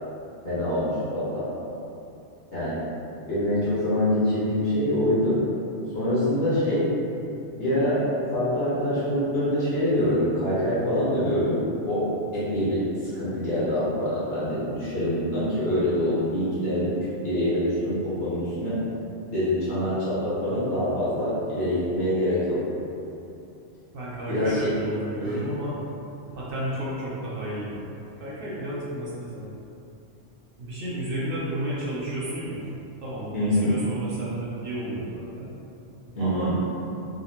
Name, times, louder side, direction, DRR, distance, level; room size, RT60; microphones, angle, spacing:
voice 1, 0.4-1.4 2.5-2.8 3.3-5.4 5.9-6.9 7.5-8.0 8.3-11.6 11.8-12.0 12.3-12.9 13.1-16.9 17.2-18.8 19.3-22.6 24.3-24.7 25.2-25.4 33.3-33.7 36.1-36.6, left 1 dB, 75° left, -13 dB, 1.7 m, -25 dB
voice 2, 23.9-25.8 26.3-27.9 28.2-29.5 30.6-32.6 33.0-35.5 36.2-36.5, right 1 dB, 60° right, -7 dB, 0.7 m, -32 dB
3.7 x 2.1 x 2.8 m, 2.7 s
omnidirectional pair, 1.2 m